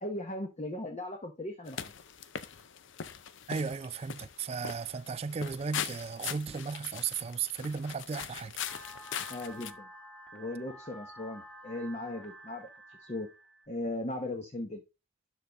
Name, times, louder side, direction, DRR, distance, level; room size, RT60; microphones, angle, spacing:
voice 1, 0.0-1.9 9.3-9.9 10.3-13.3 13.7-14.8, left 1 dB, 35° left, 0.9 m, -38 dB
sound 1, 1.7-9.7, left 8 dB, 65° left, 0.6 m, -41 dB
voice 2, 3.5-8.5, right 5 dB, 30° right, 0.3 m, -35 dB
sound 2, 8.7-13.7, right 1 dB, 5° left, 1.5 m, -50 dB
12.0 x 4.0 x 3.5 m
head